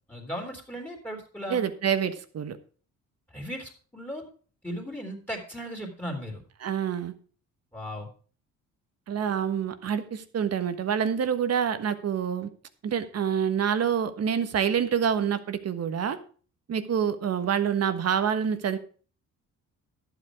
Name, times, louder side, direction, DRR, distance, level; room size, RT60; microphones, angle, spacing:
voice 1, 0.1-1.6 3.3-4.2 4.6-6.4 7.7-8.1, equal, 5° left, 2 dB, 3.1 m, -36 dB
voice 2, 1.5-2.6 6.6-7.1 9.1-12.5 12.8-16.2 16.7-18.8, right 8 dB, 55° right, 11 dB, 1.3 m, -27 dB
11.5 x 8.1 x 4.8 m, 0.40 s
cardioid pair, 90°, 30 cm